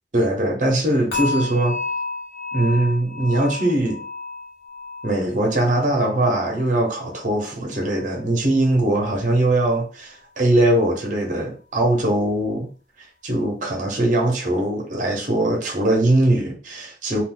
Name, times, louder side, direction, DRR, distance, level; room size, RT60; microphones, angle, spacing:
voice 1, 0.1-1.8 2.5-4.0 5.0-12.7 13.2-17.2, right 1 dB, 45° right, 0.9 m, -21 dB
sound 1, 1.1-8.2 8.5-8.9 9.4-9.5, left 3 dB, 65° left, 1.1 m, -33 dB
2.5 x 2.4 x 3.7 m
head